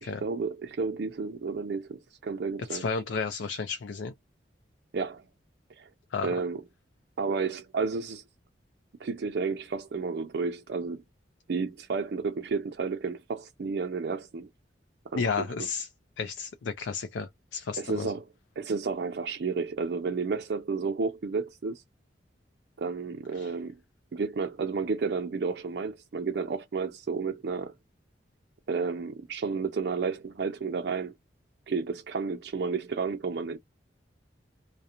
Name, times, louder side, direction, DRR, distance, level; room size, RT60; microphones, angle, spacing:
voice 1, 0.0-2.9 4.9-5.2 5.8-5.9 6.2-6.6 7.2-8.2 9.0-11.0 11.5-14.5 15.1-15.5 17.8-18.2 18.6-21.8 22.8-23.8 24.1-27.7 28.7-31.1 31.7-33.6, right 4 dB, 65° right, 0.4 m, -31 dB
voice 2, 2.7-4.1 6.1-6.3 15.1-15.9 16.2-18.1 23.4-23.5, left 5 dB, 85° left, 0.4 m, -32 dB
2.4 x 2.0 x 2.8 m
head